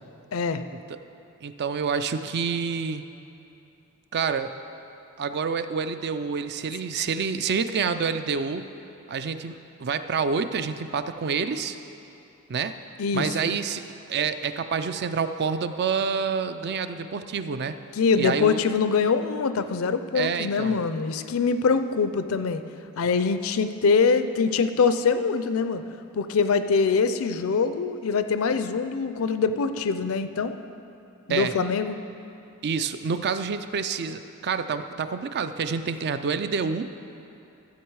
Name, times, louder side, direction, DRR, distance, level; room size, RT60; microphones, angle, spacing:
voice 1, 0.3-0.6 13.0-13.3 17.9-22.6 23.0-25.8 26.1-30.5 31.3-32.0, left 5 dB, 70° left, 10 dB, 0.5 m, -24 dB
voice 2, 1.4-3.0 4.1-4.5 5.2-8.7 9.1-11.8 12.5-12.7 13.1-13.8 14.1-17.8 18.2-18.6 20.1-20.7 31.3-31.5 32.6-36.9, right 5 dB, 50° right, 10 dB, 0.4 m, -28 dB
13.0 x 7.8 x 4.7 m, 2.8 s
head